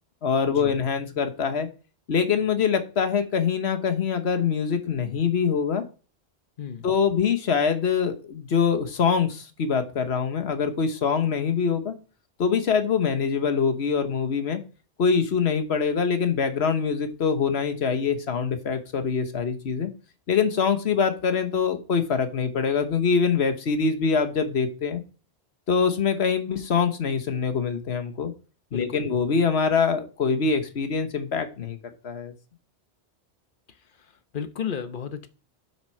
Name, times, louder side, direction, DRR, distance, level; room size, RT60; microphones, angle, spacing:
voice 1, 0.2-1.7 2.1-5.8 6.8-12.0 12.4-14.6 15.0-19.9 20.3-25.0 25.7-28.3 28.7-31.8 32.0-32.3, left 6 dB, 70° left, 1.4 m, -24 dB
voice 2, 6.6-6.9 28.7-29.0 34.3-35.3, left 7 dB, 50° left, 1.1 m, -33 dB
8.9 x 6.2 x 4.5 m
omnidirectional pair, 1.1 m